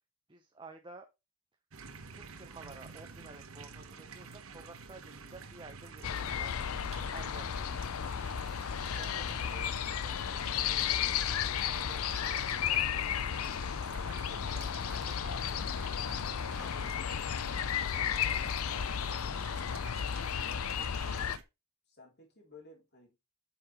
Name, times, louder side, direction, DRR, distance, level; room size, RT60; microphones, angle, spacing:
voice 1, 0.3-1.1 2.1-8.2 9.0-10.4 10.7-13.2 14.3-17.2 18.1-19.5, right 3 dB, 20° right, 0.8 m, -54 dB
sound 1, 1.7-21.4, right 4 dB, 70° right, 1.1 m, -49 dB
sound 2, 6.0-21.4, left 8 dB, 80° left, 0.5 m, -33 dB
voice 2, 21.9-23.2, left 3 dB, 50° left, 3.2 m, -56 dB
8.6 x 6.0 x 3.0 m
head